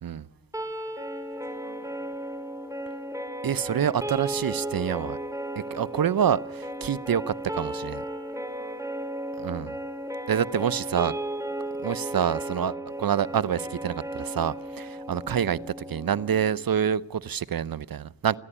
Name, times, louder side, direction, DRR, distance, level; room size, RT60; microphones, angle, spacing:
voice 1, 0.0-1.0 1.4-2.2 8.3-8.8 11.3-11.6 14.8-15.0, right 2 dB, 80° right, 7.3 m, -56 dB
sound 1, 0.5-16.6, right 1 dB, 10° right, 3.7 m, -35 dB
voice 2, 3.4-5.2 5.6-8.0 9.4-9.8 10.3-11.1 11.8-15.6 15.9-18.4, right 8 dB, 55° right, 0.8 m, -27 dB
28.0 x 11.0 x 10.0 m
cardioid pair, 60°, 41 cm